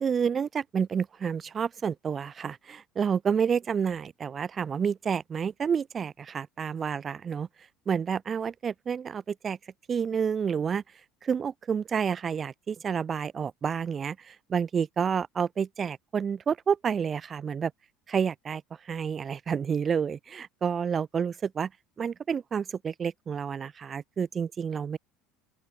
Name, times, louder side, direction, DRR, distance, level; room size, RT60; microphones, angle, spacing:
voice 1, 0.0-7.5 7.9-9.6 9.9-10.8 11.2-17.7 18.1-21.7 22.0-25.0, right 7 dB, 35° right, 0.4 m, -29 dB
open air
hypercardioid pair, 80°, 0 cm